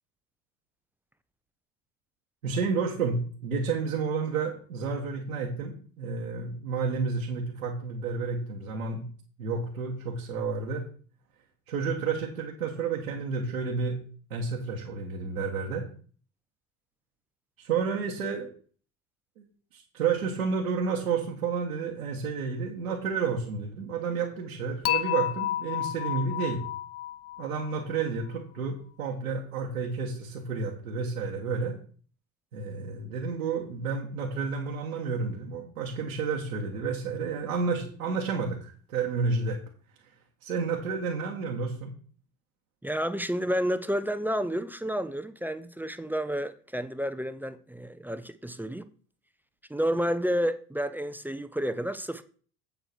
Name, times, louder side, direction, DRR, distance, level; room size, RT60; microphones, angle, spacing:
voice 1, 2.4-9.0 9.4-10.8 11.7-14.0 14.3-15.8 17.6-18.5 19.4-19.5 19.7-26.6 27.4-31.8 32.5-39.6 40.4-41.9, right 5 dB, 85° right, 1.6 m, -31 dB
Dishes pots and pans / Chink clink, 24.8-28.0, left 14 dB, 35° left, 0.5 m, -31 dB
voice 2, 42.8-48.9 49.7-52.2, equal, 5° right, 0.6 m, -30 dB
8.0 x 7.7 x 4.5 m
hypercardioid pair, 60°, 41 cm